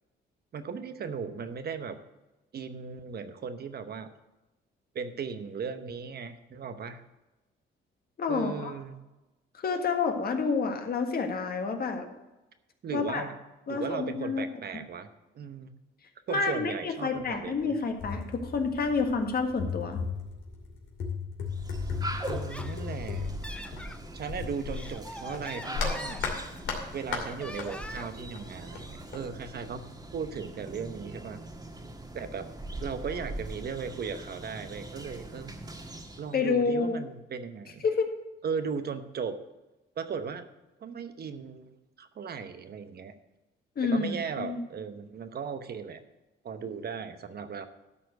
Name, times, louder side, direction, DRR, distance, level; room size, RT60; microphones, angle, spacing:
voice 1, 0.5-2.0 2.5-4.1 4.9-7.0 8.3-9.0 12.8-13.4 13.7-15.1 15.3-15.7 16.3-17.8 22.2-23.3 24.1-26.2 26.9-29.8 30.1-31.4 32.1-32.5 32.8-35.5 36.2-37.8 38.4-39.4 40.0-40.5 40.8-43.1 43.8-46.0 46.4-47.7, right 6 dB, 55° right, 10 dB, 1.0 m, -37 dB
voice 2, 8.2-8.7 9.6-12.1 12.9-13.2 13.7-14.4 16.3-20.0 36.3-37.0 37.8-38.1 43.8-44.6, left 4 dB, 50° left, 5 dB, 1.7 m, -29 dB
sound 1, 17.2-17.3 17.6-24.9 25.3-27.7 28.0-29.2, left 5 dB, 80° left, 2.5 m, -36 dB
sound 2, 21.5-36.3, right 1 dB, 20° right, 1.7 m, -41 dB
Laughter, 22.3-24.0 24.5-26.7 27.1-28.3, left 1 dB, 5° left, 0.7 m, -43 dB
12.5 x 4.4 x 8.1 m, 1.0 s
cardioid pair, 90°, 20 cm